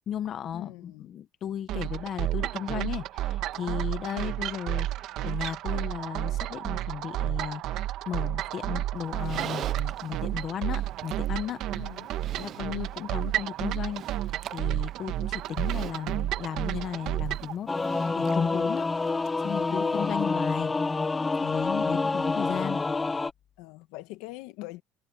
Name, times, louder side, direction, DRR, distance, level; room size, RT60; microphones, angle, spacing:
voice 1, 0.0-11.8 12.4-14.0 14.5-17.7 18.2-18.9 19.4-20.7 21.4-22.8, left 9 dB, 35° left, 1.2 m, -35 dB
voice 2, 0.5-1.1 11.7-12.7 19.7-20.2 21.9-22.4 23.6-24.8, left 18 dB, 80° left, 1.7 m, -44 dB
sound 1, 1.7-17.5, right 13 dB, 55° right, 1.3 m, -31 dB
Livestock farm animals working animals, 8.9-20.2, right 10 dB, 40° right, 0.6 m, -45 dB
Singing / Musical instrument, 17.7-23.3, left 3 dB, 10° left, 0.5 m, -27 dB
cardioid pair, 165°, 0 cm